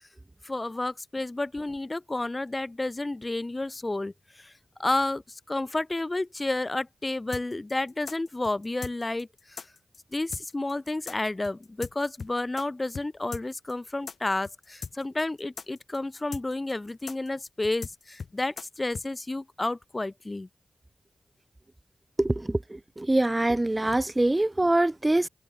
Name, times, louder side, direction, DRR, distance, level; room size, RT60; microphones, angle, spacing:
voice 1, 0.4-4.5 4.8-9.7 10.1-20.5, left 2 dB, 30° left, 2.0 m, -31 dB
sound 1, 7.3-12.7 12.9-13.1 13.3-19.1, left 5 dB, 70° left, 2.1 m, -39 dB
voice 2, 22.2-25.3, right 1 dB, 25° right, 1.8 m, -24 dB
cardioid pair, 40°, 0 cm